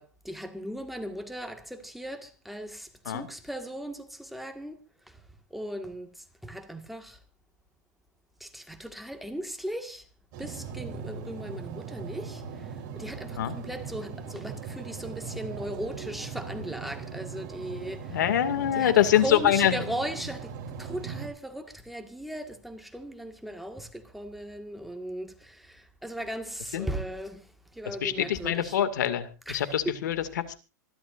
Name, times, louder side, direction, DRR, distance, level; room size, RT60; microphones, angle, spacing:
voice 1, 0.0-4.8 5.1-5.2 5.5-7.2 8.4-10.1 10.4-12.7 13.0-18.3 18.7-27.5 27.7-28.8 29.5-30.0, right 1 dB, ahead, 1.9 m, -37 dB
sound 1, 10.3-21.3, right 6 dB, 45° right, 3.8 m, -39 dB
voice 2, 18.1-19.8 26.7-26.9 27.9-30.5, left 11 dB, 75° left, 2.3 m, -25 dB
26.0 x 12.0 x 2.6 m
hypercardioid pair, 135°, 10 cm